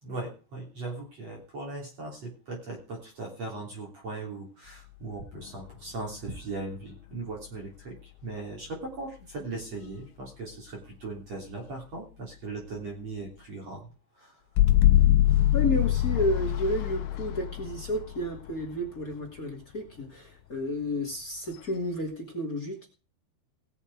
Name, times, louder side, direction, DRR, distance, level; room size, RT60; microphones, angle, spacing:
voice 1, 0.0-14.4 15.1-15.4, right 3 dB, 40° right, -1 dB, 3.9 m, -39 dB
sound 1, 5.3-6.3 8.0-8.1 14.6-19.2, left 14 dB, 80° left, 2.8 m, -24 dB
voice 2, 15.5-22.9, left 1 dB, 30° left, 3 dB, 1.9 m, -31 dB
19.5 x 7.3 x 4.7 m, 0.35 s
omnidirectional pair, 5.4 m